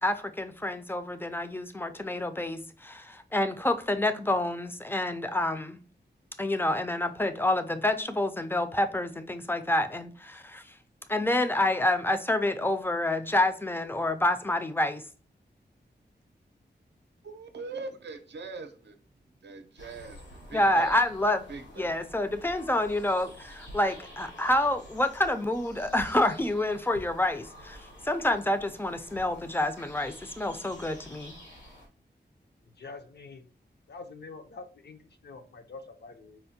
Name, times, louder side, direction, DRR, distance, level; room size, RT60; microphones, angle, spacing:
voice 1, 0.0-5.8 6.4-10.6 11.1-15.0 20.5-21.4 21.8-27.8 28.0-31.4, left 1 dB, 10° left, 0.3 m, -28 dB
voice 2, 17.2-19.0 19.4-21.0 21.5-22.1, right 4 dB, 80° right, 0.5 m, -42 dB
sound 1, 19.8-31.9, left 1 dB, 85° left, 1.1 m, -49 dB
voice 3, 32.8-33.4 33.9-36.4, left 3 dB, 70° left, 0.5 m, -45 dB
4.2 x 2.1 x 2.7 m
wide cardioid pair, 95°, 18 cm